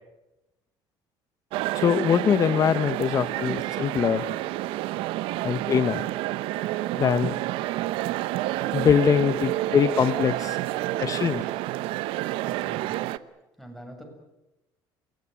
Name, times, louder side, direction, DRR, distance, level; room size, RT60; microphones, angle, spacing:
sound 1, 1.5-13.2, right 16 dB, 80° right, 0.9 m, -29 dB
voice 1, 1.7-4.3 5.4-6.0 6.9-7.3 8.7-10.6 11.0-11.4, left 8 dB, 40° left, 13 dB, 0.8 m, -23 dB
voice 2, 12.4-13.1 13.6-14.0, equal, ahead, 3 dB, 7.8 m, -45 dB
28.5 x 16.5 x 9.8 m, 0.98 s
cardioid pair, 120°, 9 cm